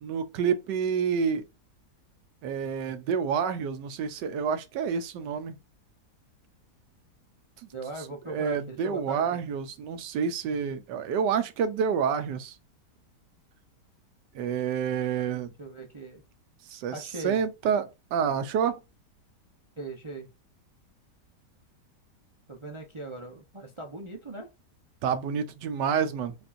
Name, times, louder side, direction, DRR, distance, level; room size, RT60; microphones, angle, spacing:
voice 1, 0.0-1.5 2.4-5.6 8.3-12.6 14.3-15.5 16.7-18.8 25.0-26.3, right 7 dB, 90° right, 1.3 m, -28 dB
voice 2, 7.7-9.4 15.3-16.2 16.9-17.4 19.8-20.3 22.5-24.5, right 2 dB, 40° right, 0.4 m, -40 dB
5.1 x 2.5 x 2.5 m
omnidirectional pair, 1.8 m